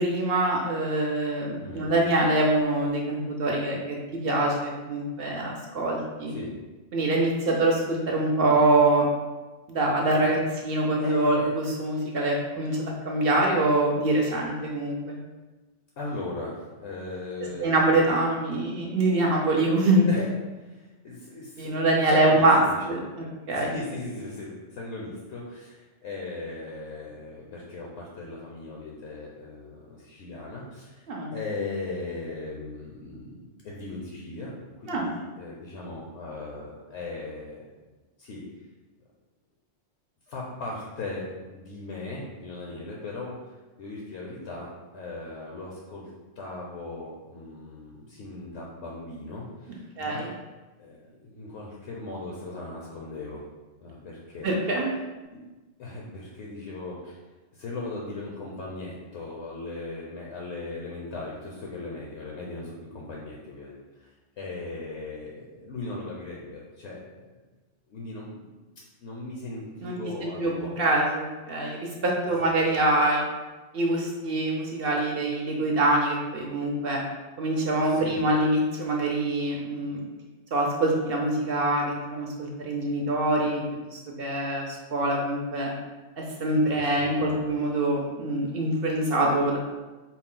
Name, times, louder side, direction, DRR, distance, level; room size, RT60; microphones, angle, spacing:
voice 1, 0.0-6.3 6.9-9.1 9.7-15.2 17.6-20.0 21.6-22.6 22.9-23.7 31.1-31.3 34.9-35.1 50.0-50.3 54.4-54.9 69.8-73.2 73.7-77.0 77.4-80.0 80.5-83.6 83.9-85.7 86.2-89.6, right 2 dB, 60° right, -1 dB, 0.7 m, -24 dB
voice 2, 1.6-1.9 6.3-6.6 11.0-11.5 16.0-17.9 18.3-18.5 20.0-20.2 20.7-22.8 23.5-31.1 31.3-37.6 38.2-38.4 40.3-46.1 46.4-50.3 50.8-53.4 53.8-54.5 55.3-55.4 55.8-57.2 57.5-67.4 67.9-68.6 69.0-70.8 72.4-72.6 77.8-78.4 86.7-87.5, left 2 dB, 70° left, -3 dB, 0.9 m, -38 dB
4.3 x 2.1 x 3.7 m, 1.2 s
omnidirectional pair, 1.2 m